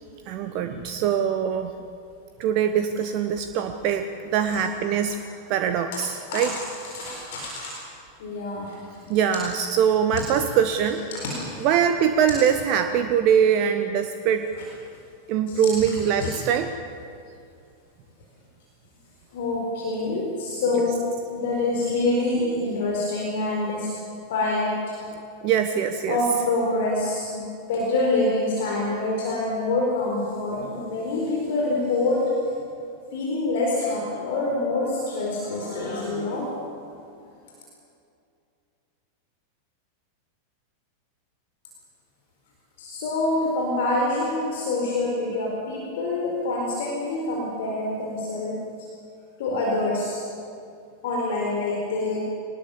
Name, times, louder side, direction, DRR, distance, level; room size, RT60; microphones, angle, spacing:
voice 1, 0.3-1.7 2.4-4.1 4.3-5.2 5.5-6.5 9.1-11.0 11.6-14.5 15.3-16.7 25.4-26.2, right 8 dB, 40° right, 7 dB, 1.0 m, -22 dB
voice 2, 6.3-7.7 8.2-8.8 10.1-10.2 11.1-11.7 14.5-14.6 15.5-16.3 19.3-21.0 21.3-23.9 24.3-24.8 26.1-32.2 33.1-36.5 42.8-48.6 49.4-50.2 51.0-52.2, left 2 dB, 55° left, -2 dB, 4.4 m, -26 dB
23.5 x 19.5 x 7.3 m, 2.5 s
figure-of-eight pair, 90°, 0 cm